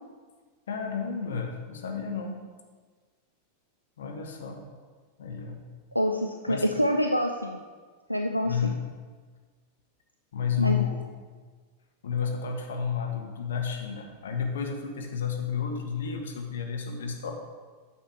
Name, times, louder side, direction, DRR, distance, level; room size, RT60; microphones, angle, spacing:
voice 1, 0.7-2.4 4.0-4.6 5.2-5.6 6.5-6.8 8.4-8.8 10.3-11.2 12.0-17.3, left 7 dB, 60° left, 3 dB, 1.1 m, -31 dB
voice 2, 5.9-7.6 8.1-8.8 10.6-10.9, equal, 90° left, 4 dB, 0.4 m, -26 dB
9.1 x 6.5 x 3.5 m, 1.5 s
figure-of-eight pair, 90°, 0 cm